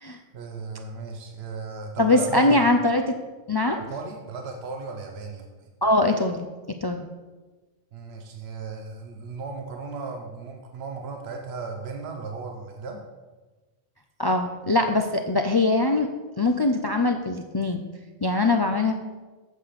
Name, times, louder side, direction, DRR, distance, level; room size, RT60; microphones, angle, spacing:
voice 1, 0.3-2.6 3.9-5.7 7.9-13.0, right 4 dB, 75° right, 2 dB, 1.2 m, -36 dB
voice 2, 2.0-3.2 3.5-3.8 5.8-6.5 6.8-7.0 14.2-16.1 16.4-17.8 18.2-18.9, left 2 dB, 35° left, 5 dB, 0.4 m, -22 dB
8.2 x 5.7 x 6.7 m, 1.2 s
omnidirectional pair, 1.1 m